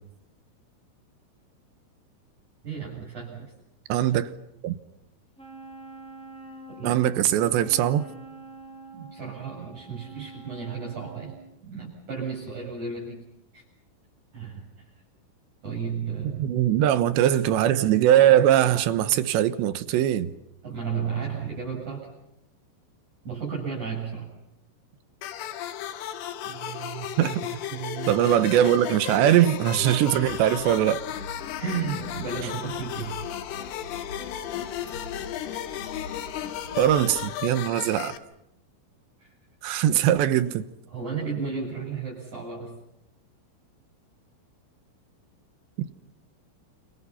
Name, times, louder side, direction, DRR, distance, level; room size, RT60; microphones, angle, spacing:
voice 1, 2.6-3.5 6.7-7.0 8.9-11.4 11.6-13.2 13.5-13.6 14.3-14.9 15.6-16.6 20.6-22.1 23.2-24.3 26.4-27.4 27.7-28.2 31.6-33.2 39.2-39.3 39.9-40.0 40.9-42.8, right 6 dB, 35° right, 9.1 m, -33 dB
voice 2, 3.9-4.3 4.6-4.8 6.8-8.1 16.4-20.3 27.2-27.4 28.1-31.0 36.8-38.2 39.6-40.6, right 11 dB, 70° right, 2.9 m, -21 dB
Wind instrument woodwind instrument, 5.4-11.5, right 2 dB, ahead, 4.6 m, -45 dB
sound 1, 25.2-38.2, left 11 dB, 75° left, 4.0 m, -35 dB
sound 2, 30.1-37.3, left 5 dB, 60° left, 1.6 m, -41 dB
29.0 x 28.5 x 5.8 m
omnidirectional pair, 6.0 m